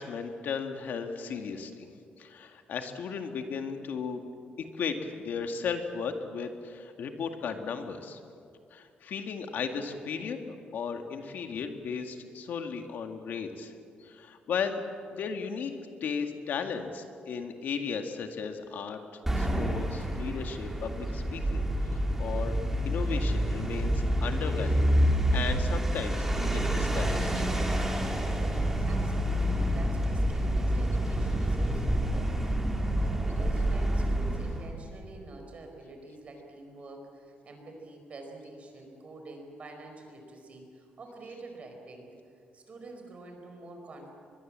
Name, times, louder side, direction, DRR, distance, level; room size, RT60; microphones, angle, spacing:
voice 1, 0.0-1.9 2.2-4.2 4.6-8.2 8.7-13.7 14.0-14.8 15.1-15.7 16.0-19.0 19.4-22.6 22.8-27.5, left 6 dB, 65° left, 5 dB, 1.9 m, -35 dB
sound 1, 19.3-34.8, right 1 dB, 10° right, 2.6 m, -28 dB
voice 2, 28.5-42.1 42.5-44.1, right 2 dB, 40° right, 3 dB, 4.8 m, -47 dB
23.5 x 21.5 x 7.5 m, 2.4 s
cardioid pair, 140°, 3 cm